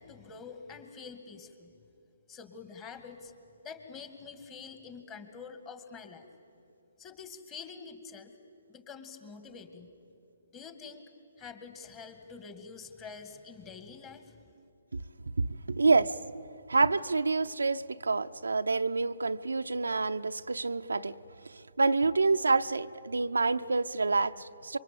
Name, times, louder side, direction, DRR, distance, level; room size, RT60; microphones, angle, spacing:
voice 1, 0.0-1.8 2.3-3.3 3.6-6.3 7.0-8.3 8.7-9.9 10.5-11.0 11.4-14.4, left 5 dB, 20° left, 2.3 m, -46 dB
voice 2, 15.4-16.3 16.7-21.1 21.8-24.8, right 3 dB, 85° right, 0.7 m, -27 dB
27.5 x 24.0 x 8.8 m
figure-of-eight pair, 140°, 0 cm